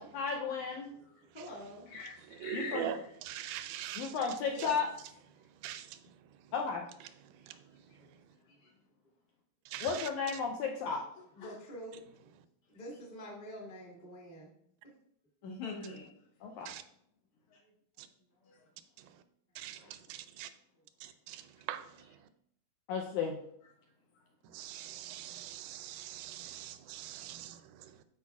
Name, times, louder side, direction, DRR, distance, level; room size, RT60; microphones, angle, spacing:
voice 1, 0.1-0.9 2.5-2.8 4.0-4.9 6.5-6.8 9.8-11.0 16.4-16.7 22.9-23.4, left 5 dB, 90° left, 1.7 m, -33 dB
voice 2, 0.9-1.9 4.4-4.9 8.0-8.1 8.4-8.7 11.3-12.0 12.7-14.5 17.6-17.7 18.3-18.4 20.0-20.1, equal, 30° left, 0.7 m, -47 dB
voice 3, 1.9-3.1 8.6-8.7 11.4-11.5 15.4-16.1 17.5-17.6 18.5-18.7, left 4 dB, 70° left, 1.9 m, -44 dB
voice 4, 2.4-3.0 3.3-4.1 5.6-5.9 9.7-10.1 16.7-16.8 19.6-19.8 20.1-20.5 21.3-21.4 21.7-21.8 24.5-27.6, right 11 dB, 85° right, 2.4 m, -41 dB
12.5 x 4.7 x 2.3 m
omnidirectional pair, 4.1 m